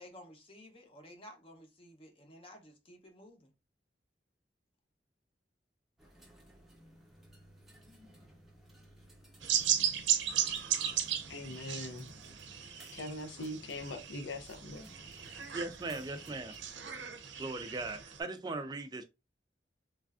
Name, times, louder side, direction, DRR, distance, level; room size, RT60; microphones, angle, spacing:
voice 1, 0.0-3.5, left 1 dB, 30° left, 0.7 m, -54 dB
sound 1, 6.0-16.7, equal, ahead, 0.7 m, -58 dB
sound 2, 9.4-18.2, right 9 dB, 90° right, 0.5 m, -36 dB
voice 2, 11.3-12.1 12.9-14.8, left 2 dB, 85° left, 0.5 m, -41 dB
voice 3, 15.5-16.5 17.4-19.0, right 3 dB, 25° right, 0.3 m, -39 dB
3.2 x 2.4 x 2.3 m
head